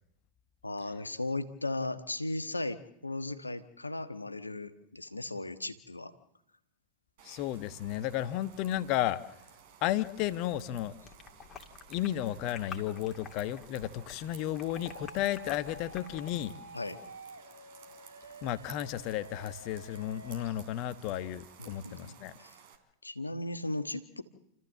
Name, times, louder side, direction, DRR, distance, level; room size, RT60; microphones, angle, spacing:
voice 1, 0.6-6.1 16.7-17.0 21.6-22.6 23.0-24.2, left 2 dB, 80° left, 10 dB, 1.3 m, -37 dB
voice 2, 7.2-9.2 9.8-10.9 11.9-16.5 18.4-22.3, left 13 dB, 40° left, 13 dB, 1.1 m, -33 dB
sound 1, 7.2-22.8, right 9 dB, 50° right, 3.4 m, -56 dB
sound 2, 10.7-16.4, left 6 dB, 25° left, 2.5 m, -50 dB
sound 3, 14.6-20.5, right 1 dB, 90° right, 2.1 m, -50 dB
29.0 x 14.0 x 7.6 m, 0.81 s
figure-of-eight pair, 90°, 0 cm